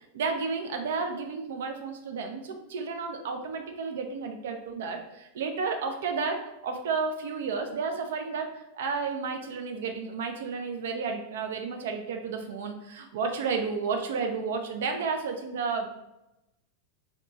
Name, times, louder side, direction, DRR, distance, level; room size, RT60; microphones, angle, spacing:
voice 1, 0.1-8.5 8.8-16.0, right 5 dB, 60° right, 5 dB, 0.5 m, -32 dB
2.9 x 2.2 x 3.6 m, 0.89 s
figure-of-eight pair, 90°, 0 cm